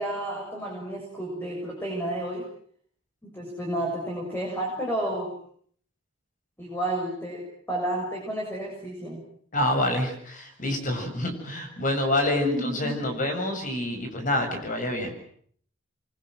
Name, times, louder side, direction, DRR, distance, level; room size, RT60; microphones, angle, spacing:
voice 1, 0.0-2.4 3.2-5.3 6.6-9.2 12.4-13.0, right 1 dB, 10° left, -1 dB, 7.4 m, -31 dB
voice 2, 9.5-15.2, left 1 dB, 40° left, 5 dB, 7.3 m, -27 dB
29.0 x 24.5 x 7.9 m, 0.62 s
head